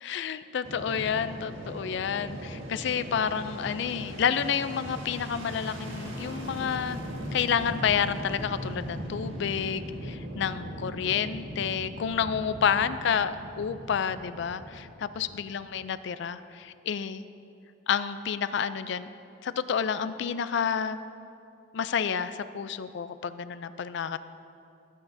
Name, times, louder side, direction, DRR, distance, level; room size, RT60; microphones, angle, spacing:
voice 1, 0.0-7.0 7.3-17.2 17.9-19.1 19.4-21.0 21.7-24.2, left 7 dB, 60° left, 13 dB, 0.4 m, -29 dB
Fixed-wing aircraft airplane, 0.6-15.8, equal, 80° right, 1.6 m, -39 dB
18.0 x 9.3 x 2.7 m, 2.6 s
head